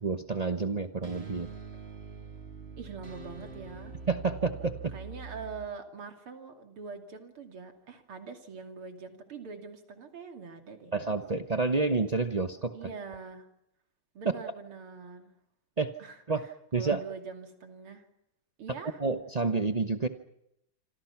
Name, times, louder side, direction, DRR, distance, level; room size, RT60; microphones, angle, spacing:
voice 1, 0.0-1.5 4.1-4.9 10.9-12.9 15.8-15.9 16.3-16.5 16.7-17.0 19.0-20.1, right 4 dB, 45° right, 8 dB, 0.5 m, -29 dB
sound 1, 0.6-5.7, right 4 dB, 30° right, 3.1 m, -44 dB
voice 2, 2.8-3.9 4.9-10.9 12.7-13.5 14.1-15.3 16.0-16.2 16.8-18.0 18.6-19.0, right 5 dB, 80° right, 5 dB, 3.5 m, -43 dB
27.0 x 26.0 x 5.9 m, 0.80 s
omnidirectional pair, 2.3 m